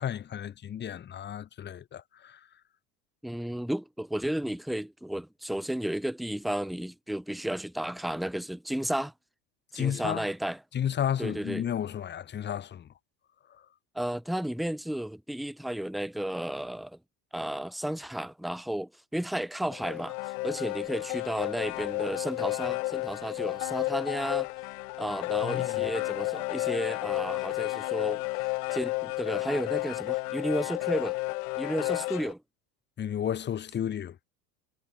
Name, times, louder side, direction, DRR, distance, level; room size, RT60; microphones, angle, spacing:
voice 1, 0.0-2.5 9.7-10.3 10.7-12.9 25.4-25.9 33.0-34.2, left 9 dB, 20° left, 0.9 m, -32 dB
voice 2, 3.2-9.1 9.7-10.6 11.2-11.6 13.9-17.0 17.3-24.5 25.0-28.2 28.7-31.2 31.6-32.4, right 1 dB, ahead, 0.6 m, -33 dB
sound 1, 19.7-32.3, left 25 dB, 70° left, 1.2 m, -32 dB
supercardioid pair, 115°, 48 cm